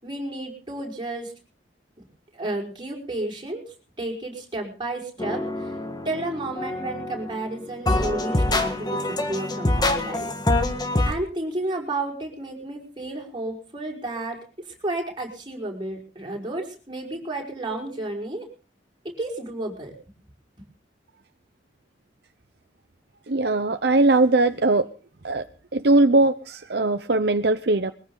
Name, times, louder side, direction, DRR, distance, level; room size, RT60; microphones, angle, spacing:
voice 1, 0.0-1.3 2.3-5.7 6.1-10.6 11.0-18.5 19.0-19.9 20.5-20.6, right 2 dB, 25° right, 0 dB, 5.5 m, -32 dB
sound 1, 5.2-7.5 7.9-11.1, left 2 dB, 25° left, 1.7 m, -25 dB
voice 2, 23.3-24.9 25.2-25.5 25.7-27.9, right 2 dB, 65° right, 9 dB, 0.8 m, -20 dB
22.0 x 15.0 x 4.0 m, 0.38 s
head